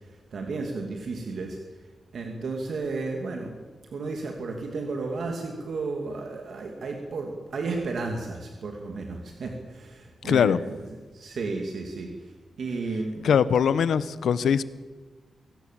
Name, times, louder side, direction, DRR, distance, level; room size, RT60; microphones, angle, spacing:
voice 1, 0.3-1.6 2.1-3.6 3.9-10.8 11.1-12.3 12.6-13.3, right 3 dB, 60° right, 2 dB, 2.6 m, -33 dB
voice 2, 10.2-10.6 13.2-14.6, left 7 dB, 85° left, 16 dB, 0.9 m, -21 dB
24.5 x 17.5 x 7.6 m, 1.3 s
wide cardioid pair, 150°, 0 cm